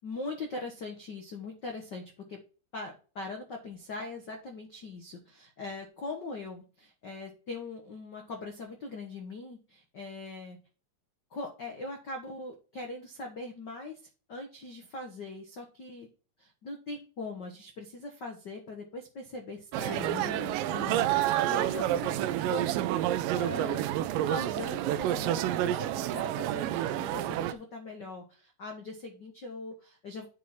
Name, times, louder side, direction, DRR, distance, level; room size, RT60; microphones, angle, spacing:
voice 1, 0.0-2.4 2.7-10.6 11.3-14.0 14.3-16.1 16.4-22.7 23.3-23.8 24.3-30.3, left 2 dB, 65° left, 2 dB, 1.0 m, -41 dB
sound 1, 19.7-27.5, right 12 dB, 80° right, 2.1 m, -29 dB
9.1 x 5.4 x 4.4 m, 0.36 s
omnidirectional pair, 4.3 m